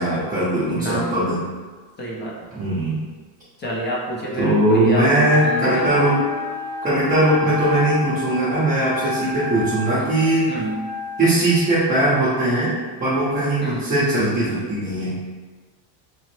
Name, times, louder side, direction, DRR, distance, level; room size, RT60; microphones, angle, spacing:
voice 1, 0.0-1.4 2.5-3.0 4.4-6.3 6.8-10.5 11.2-15.2, right 1 dB, 20° right, -10 dB, 0.7 m, -20 dB
voice 2, 0.7-1.1 2.0-2.5 3.6-5.9 10.5-10.9 13.6-13.8, left 1 dB, 25° left, -4 dB, 0.5 m, -28 dB
Trumpet, 4.9-9.9, left 3 dB, 65° left, 1.4 m, -42 dB
Wind instrument woodwind instrument, 5.2-11.4, left 3 dB, 80° right, 0.6 m, -30 dB
3.0 x 2.0 x 3.1 m, 1.4 s
supercardioid pair, 115°, 48 cm